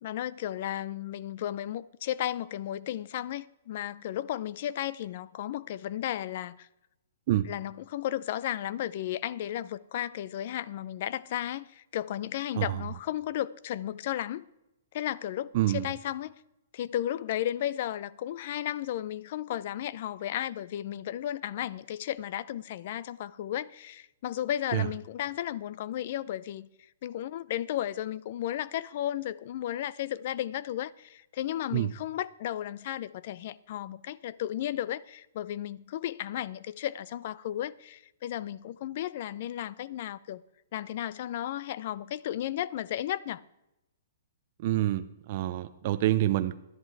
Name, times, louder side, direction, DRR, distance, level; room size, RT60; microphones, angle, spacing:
voice 1, 0.0-6.7 7.4-14.5 14.9-16.3 16.7-26.7 27.0-40.4 40.7-43.4, left 12 dB, 50° left, 0.4 m, -34 dB
voice 2, 15.5-15.8 24.7-24.9 31.7-31.9 44.6-45.0 45.3-46.6, right 14 dB, 40° right, 0.5 m, -26 dB
11.0 x 10.5 x 4.6 m
hypercardioid pair, 160°, 0 cm